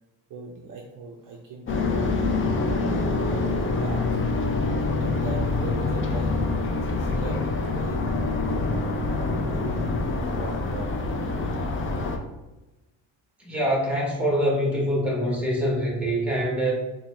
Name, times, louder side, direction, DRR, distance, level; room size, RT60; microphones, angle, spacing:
voice 1, 0.3-4.2 5.0-9.5 10.2-11.2, right 4 dB, 45° right, 0 dB, 0.5 m, -39 dB
sound 1, 1.7-12.2, left 3 dB, 30° left, 0.4 m, -26 dB
voice 2, 13.4-16.7, equal, 5° right, -3 dB, 1.1 m, -24 dB
4.0 x 2.3 x 3.1 m, 1.1 s
cardioid pair, 110°, 46 cm